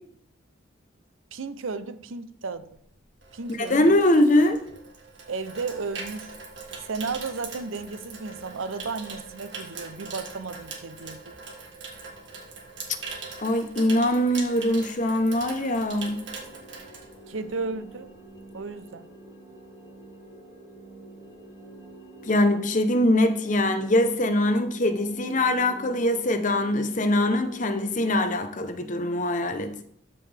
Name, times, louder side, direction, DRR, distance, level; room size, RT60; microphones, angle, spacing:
voice 1, 1.3-2.8 3.3-3.8 5.3-6.3 6.8-11.3 17.3-18.1 18.5-19.1, right 4 dB, 85° right, 0.6 m, -34 dB
Water tap faucet / Sink (filling or washing), 2.7-17.7 18.0-18.3, right 4 dB, 65° right, 1.9 m, -41 dB
voice 2, 3.5-4.6 13.4-16.2 22.2-29.7, left 1 dB, 40° left, 0.8 m, -22 dB
sound 1, 15.4-28.1, right 2 dB, 15° right, 1.6 m, -46 dB
13.0 x 5.4 x 3.4 m
head